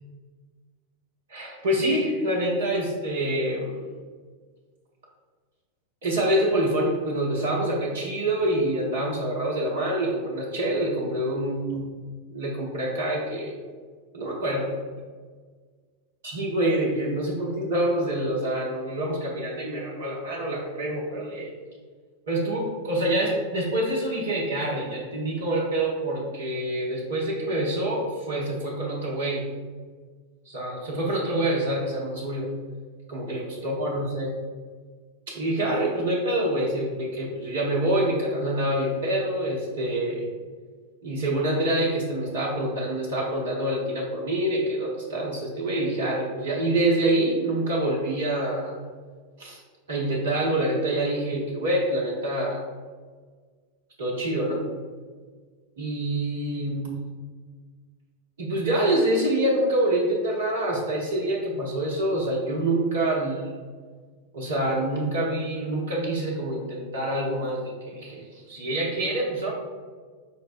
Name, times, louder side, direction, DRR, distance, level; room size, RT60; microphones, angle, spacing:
voice 1, 1.3-3.9 6.0-11.8 12.3-13.6 14.1-14.7 16.2-21.5 22.3-29.5 30.5-32.5 33.1-34.3 35.3-40.3 41.0-48.8 49.4-49.6 49.9-52.6 54.0-54.7 55.8-56.9 58.4-63.5 64.3-69.5, right 1 dB, 60° right, -4 dB, 0.8 m, -26 dB
5.1 x 2.1 x 4.2 m, 1.5 s
figure-of-eight pair, 90°, 0 cm